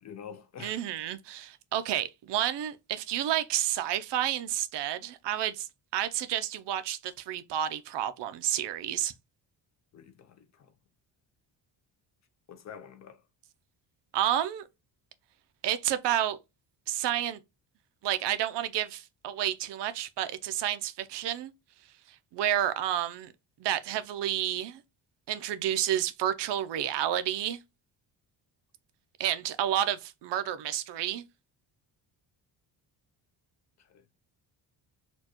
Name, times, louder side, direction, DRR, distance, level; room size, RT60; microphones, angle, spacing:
voice 1, 0.0-0.8 9.9-10.7 12.5-13.2 33.8-34.1, left 8 dB, 40° left, 0.4 m, -47 dB
voice 2, 0.6-9.1 14.1-14.7 15.6-16.4 16.9-17.4 18.0-21.5 22.3-23.3 23.6-24.8 25.3-27.6 29.2-31.2, right 11 dB, 70° right, 0.6 m, -30 dB
4.3 x 2.3 x 2.9 m
cardioid pair, 170°, 44 cm